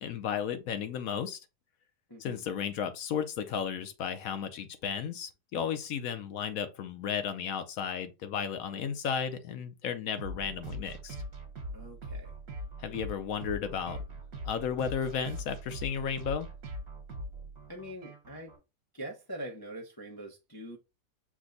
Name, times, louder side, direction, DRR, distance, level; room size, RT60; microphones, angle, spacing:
voice 1, 0.0-1.4 2.2-11.2 12.8-14.0 14.4-16.5, left 7 dB, 65° left, 1.0 m, -34 dB
voice 2, 2.1-2.5 11.7-12.4 17.7-18.6 18.9-20.8, right 1 dB, 35° left, 0.3 m, -43 dB
sound 1, 10.2-18.6, right 1 dB, 60° right, 1.6 m, -41 dB
6.0 x 2.2 x 3.8 m
omnidirectional pair, 1.8 m